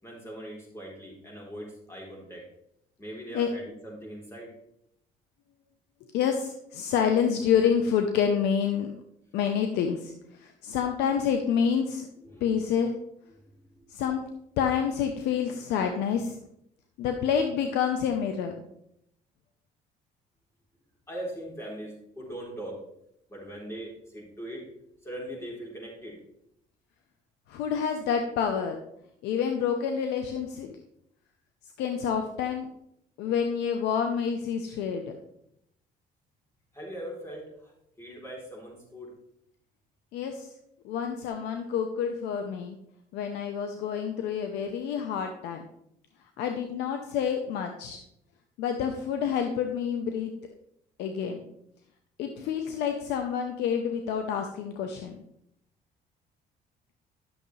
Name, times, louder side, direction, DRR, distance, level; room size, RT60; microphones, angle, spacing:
voice 1, 0.0-2.5 3.0-4.5 12.2-12.5 13.3-13.9 21.1-22.8 23.3-24.7 25.0-26.2 36.7-37.7 38.0-39.2, right 1 dB, 15° left, -2 dB, 3.7 m, -41 dB
voice 2, 6.1-8.9 9.3-12.1 12.4-12.9 13.9-14.2 14.6-16.4 17.0-18.5 27.5-28.8 29.2-30.7 31.8-32.7 33.2-35.1 40.1-40.5 40.8-42.8 43.1-45.6 46.4-48.0 48.6-50.3 51.0-51.4 52.2-55.2, left 7 dB, 85° left, 5 dB, 0.8 m, -28 dB
11.5 x 6.7 x 3.3 m, 0.76 s
cardioid pair, 110°, 17 cm